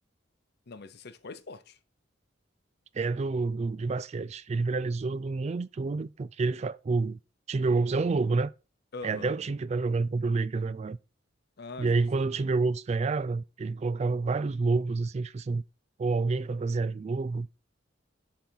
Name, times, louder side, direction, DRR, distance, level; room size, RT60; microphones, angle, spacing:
voice 1, 0.7-1.8 8.9-9.3 11.6-12.0, left 3 dB, 60° left, 0.7 m, -43 dB
voice 2, 2.9-7.2 7.5-8.5 9.0-11.0 11.8-15.6 16.0-17.5, right 3 dB, 35° right, 0.3 m, -28 dB
10.5 x 3.9 x 4.5 m
head